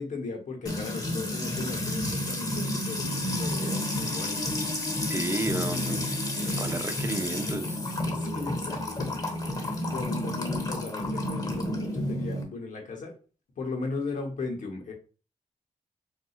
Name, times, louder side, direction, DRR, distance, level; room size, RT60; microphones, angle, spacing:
voice 1, 0.0-4.4 5.1-5.2 7.8-9.2 9.5-13.1 13.6-14.9, left 3 dB, 85° left, 1 dB, 0.9 m, -37 dB
Music / Water tap faucet / Trickle dribble, 0.7-12.4, left 1 dB, 30° left, 0.8 m, -30 dB
voice 2, 5.1-7.8, right 2 dB, 20° right, 7 dB, 0.5 m, -33 dB
4.1 x 2.4 x 2.3 m, 0.36 s
cardioid pair, 80°, 13 cm